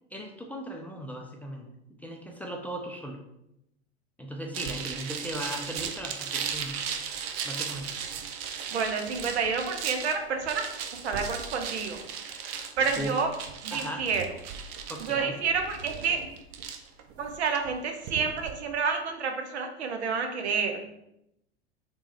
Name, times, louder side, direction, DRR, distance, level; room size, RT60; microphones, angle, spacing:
voice 1, 0.1-1.7 2.0-3.2 4.2-6.9 7.4-7.9 13.0-13.1 13.7-14.0 14.9-15.4, equal, 5° left, 0 dB, 0.4 m, -37 dB
sound 1, 4.5-18.5, right 7 dB, 45° right, 0.5 m, -37 dB
voice 2, 8.7-10.7 10.9-12.0 12.8-13.3 13.6-14.2 15.1-16.2 17.2-20.8, right 5 dB, 80° right, 5 dB, 0.7 m, -29 dB
3.2 x 3.0 x 3.1 m, 0.83 s
hypercardioid pair, 90°, 33 cm